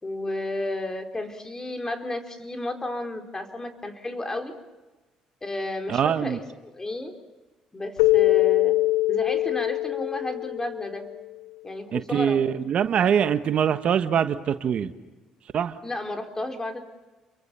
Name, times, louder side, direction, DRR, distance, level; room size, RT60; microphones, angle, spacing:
voice 1, 0.0-4.5 5.4-7.2 7.7-8.8 9.1-11.0 11.6-12.4 15.8-16.8, left 2 dB, 20° left, 5 dB, 4.2 m, -32 dB
voice 2, 5.9-6.4 11.9-14.9 15.5-15.8, right 8 dB, 60° right, 10 dB, 1.3 m, -23 dB
Keyboard (musical), 8.0-11.2, left 19 dB, 85° left, 0.9 m, -23 dB
29.5 x 24.0 x 6.9 m, 1.2 s
supercardioid pair, 60°, 2 cm